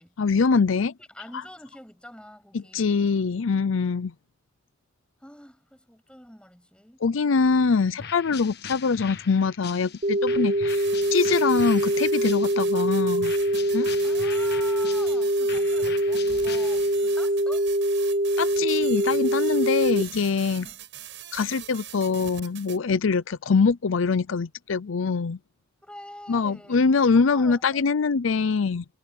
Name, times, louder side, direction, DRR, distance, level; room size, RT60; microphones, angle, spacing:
voice 1, 0.2-0.9 2.5-4.1 7.0-10.8 11.1-13.3 13.7-13.9 18.4-20.7 21.3-25.4 26.3-28.8, left 5 dB, 80° left, 0.6 m, -23 dB
voice 2, 1.1-3.2 5.2-7.0 14.0-17.7 20.5-20.9 25.8-26.8 27.1-27.8, left 1 dB, 5° left, 7.1 m, -45 dB
sound 1, 8.0-12.8 13.2-17.2, left 7 dB, 55° left, 1.5 m, -41 dB
sound 2, 10.0-20.0, right 1 dB, 35° right, 0.7 m, -24 dB
sound 3, 10.7-22.8, right 12 dB, 65° right, 7.5 m, -42 dB
head